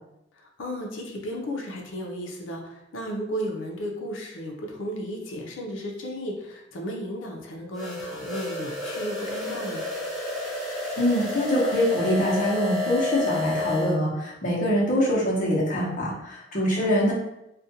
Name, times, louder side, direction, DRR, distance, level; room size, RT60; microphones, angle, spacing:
voice 1, 0.6-9.9 16.5-16.9, equal, 85° left, 0 dB, 0.6 m, -34 dB
sound 1, 7.7-14.0, left 2 dB, ahead, 0.8 m, -30 dB
voice 2, 11.0-17.1, equal, 40° left, -4 dB, 0.8 m, -24 dB
2.4 x 2.2 x 2.8 m, 0.85 s
head